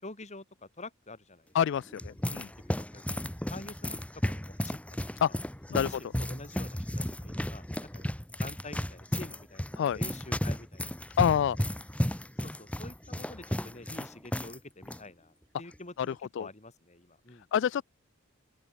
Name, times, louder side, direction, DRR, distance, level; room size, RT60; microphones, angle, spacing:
voice 1, 0.0-1.5 2.1-2.4 2.6-3.2 3.5-4.0 4.2-5.0 5.7-8.1 8.4-11.1 12.4-17.5, left 2 dB, 35° left, 3.7 m, -47 dB
voice 2, 1.5-2.5 5.2-5.3 5.7-5.9 9.8-10.0 11.2-11.6 16.4-16.5 17.5-17.8, left 8 dB, 60° left, 0.3 m, -26 dB
sound 1, 1.7-14.6 14.8-15.0 15.7-16.0, equal, 5° left, 1.2 m, -34 dB
open air
head